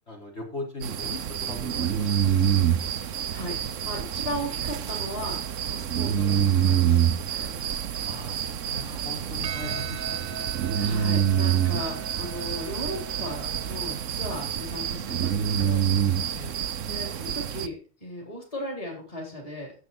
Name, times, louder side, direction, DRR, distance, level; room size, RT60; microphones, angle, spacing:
voice 1, 0.1-2.5 8.1-10.5 16.3-16.6, left 1 dB, 60° left, -2 dB, 4.4 m, -39 dB
sound 1, 0.8-17.7, right 9 dB, 80° right, 1.2 m, -27 dB
voice 2, 2.8-7.8 10.7-15.8 16.9-19.7, equal, 30° left, -1 dB, 3.9 m, -37 dB
Percussion, 9.4-14.1, right 6 dB, 50° right, 0.9 m, -41 dB
12.5 x 8.2 x 4.2 m, 0.37 s
omnidirectional pair, 1.3 m